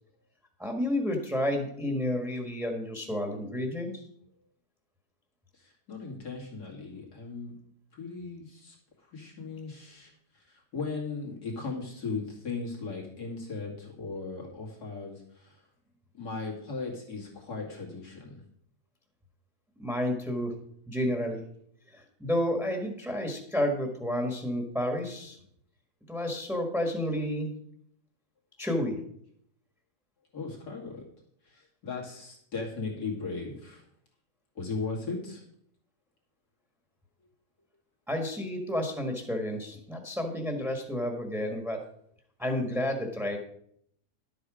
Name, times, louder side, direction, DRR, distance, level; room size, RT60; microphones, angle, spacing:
voice 1, 0.6-4.0 19.8-20.6 20.9-21.4 21.9-25.4 26.1-27.5 28.6-29.0 38.1-41.8 42.4-43.4, left 1 dB, ahead, 2 dB, 1.5 m, -30 dB
voice 2, 5.5-7.5 7.9-8.8 9.1-15.6 16.1-18.4 30.3-31.0 31.5-33.8 34.6-35.4, left 4 dB, 70° left, -1 dB, 3.0 m, -37 dB
11.5 x 8.1 x 5.0 m, 0.67 s
omnidirectional pair, 1.8 m